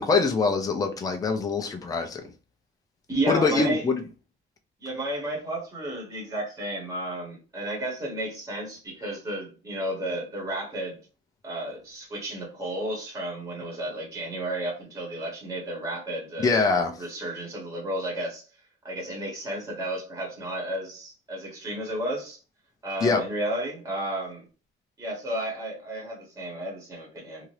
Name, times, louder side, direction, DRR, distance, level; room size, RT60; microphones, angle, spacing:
voice 1, 0.0-2.2 3.3-4.0 16.4-16.9 23.0-23.2, left 4 dB, 15° left, 0.4 m, -23 dB
voice 2, 3.1-3.9 4.8-11.0 11.4-16.6 17.0-18.4 18.8-22.4 22.8-24.5 25.0-27.5, right 1 dB, 15° right, 1.2 m, -32 dB
2.8 x 2.4 x 3.2 m
cardioid pair, 170°, 21 cm